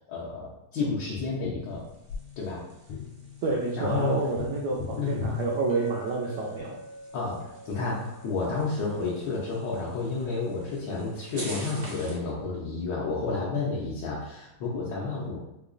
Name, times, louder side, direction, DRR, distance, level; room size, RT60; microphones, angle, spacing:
voice 1, 0.1-1.8 2.4-2.6 3.8-4.3 5.0-5.3 7.1-15.4, left 3 dB, 70° left, -5 dB, 1.3 m, -30 dB
Tap, 1.2-6.5 9.1-9.2, left 6 dB, 85° left, 1.5 m, -39 dB
sound 1, 1.6-12.3, right 1 dB, 65° right, 0.5 m, -48 dB
voice 2, 3.4-6.8, right 3 dB, 80° right, -2 dB, 0.9 m, -29 dB
Chink clink, 5.7-10.1, equal, 45° left, 0.4 m, -46 dB
4.8 x 2.3 x 2.4 m, 0.89 s
omnidirectional pair, 2.3 m